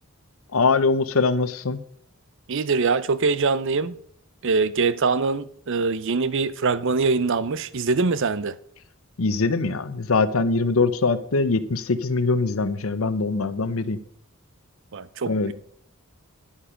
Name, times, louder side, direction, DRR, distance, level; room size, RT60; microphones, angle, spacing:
voice 1, 0.5-1.8 9.2-14.0 15.3-15.5, left 3 dB, 75° left, 0.8 m, -22 dB
voice 2, 2.5-4.0 4.4-8.5 14.9-15.5, right 4 dB, 65° right, 0.6 m, -23 dB
10.5 x 8.7 x 5.1 m
head